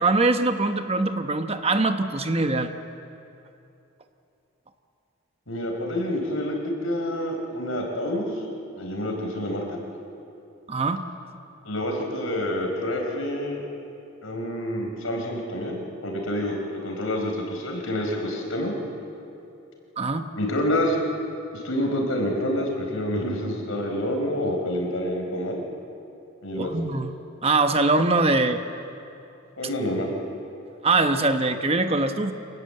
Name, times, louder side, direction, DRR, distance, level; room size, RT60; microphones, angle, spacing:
voice 1, 0.0-2.7 10.7-11.0 20.0-20.3 26.6-27.1 27.4-28.6 30.8-32.3, right 3 dB, 30° right, 7 dB, 1.0 m, -22 dB
voice 2, 5.5-8.3 8.8-9.8 11.6-13.6 14.2-18.7 20.4-21.0 21.6-25.6 26.4-26.7 29.6-30.1, left 1 dB, 85° left, 2 dB, 4.4 m, -27 dB
26.0 x 19.0 x 7.8 m, 2.7 s
head